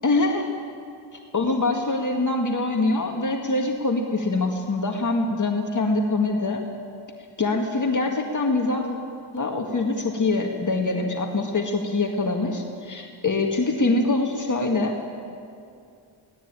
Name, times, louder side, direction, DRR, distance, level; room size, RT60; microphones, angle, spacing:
voice 1, 0.0-0.5 1.3-6.6 7.4-9.0 9.3-15.0, left 2 dB, 40° left, 1 dB, 2.0 m, -24 dB
23.5 x 18.0 x 9.0 m, 2.4 s
wide cardioid pair, 130°, 48 cm